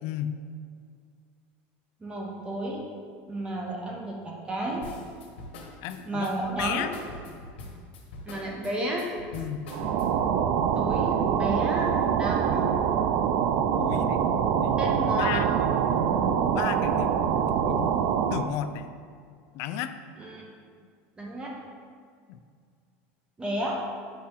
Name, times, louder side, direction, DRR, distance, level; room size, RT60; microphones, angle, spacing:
voice 1, 0.0-0.4 5.8-6.3 6.6-6.9 9.3-9.7 13.8-14.2 14.6-14.8 15.1-15.5 15.9-17.9 18.3-18.9 19.5-19.9 22.3-22.4, left 10 dB, 55° left, 10 dB, 0.4 m, -34 dB
voice 2, 2.0-2.9 3.3-4.9 6.1-6.9 8.2-9.1 10.7-12.7 14.8-15.4 20.2-20.5 21.2-21.6 23.4-23.8, right 1 dB, 15° right, -2 dB, 0.8 m, -32 dB
sound 1, 4.8-10.3, left 1 dB, 85° left, 1.2 m, -43 dB
sound 2, 9.7-18.5, right 8 dB, 50° right, 0.4 m, -25 dB
7.1 x 4.4 x 3.8 m, 2.1 s
supercardioid pair, 145°, 6 cm